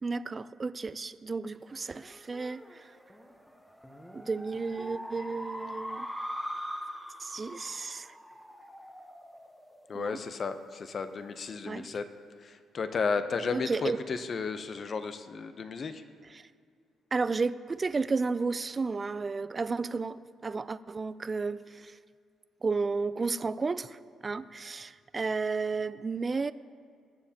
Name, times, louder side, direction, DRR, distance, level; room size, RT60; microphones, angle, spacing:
voice 1, 0.0-3.0 4.1-6.1 7.2-8.2 9.9-10.2 11.7-11.9 13.5-14.0 16.2-16.5 17.1-22.0 22.6-26.5, right 4 dB, 30° right, 15 dB, 0.3 m, -33 dB
sound 1, 1.7-10.5, equal, 5° left, 0.9 m, -42 dB
voice 2, 9.9-12.1 12.4-16.0, left 5 dB, 45° left, 10 dB, 0.7 m, -33 dB
20.0 x 7.1 x 2.8 m, 2.3 s
cardioid pair, 90°, 0 cm